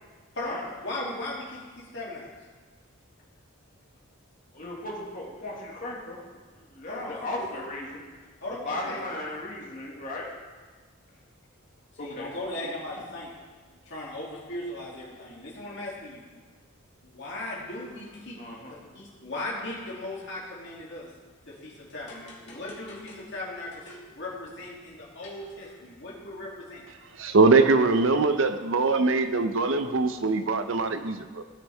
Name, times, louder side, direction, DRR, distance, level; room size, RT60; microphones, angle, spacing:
voice 1, 0.3-2.3 6.8-7.5 8.4-9.0 12.0-13.3 13.7-16.2 17.0-18.4 18.7-21.1 21.5-26.8, left 1 dB, 55° left, -5 dB, 2.7 m, -37 dB
voice 2, 4.5-6.2 6.6-8.0 8.6-10.3 12.0-12.3 12.6-12.8 18.4-18.9 22.5-22.6, left 2 dB, 40° left, -3 dB, 2.0 m, -36 dB
voice 3, 27.2-31.4, right 3 dB, 60° right, 8 dB, 0.7 m, -22 dB
17.0 x 6.4 x 3.5 m, 1.5 s
head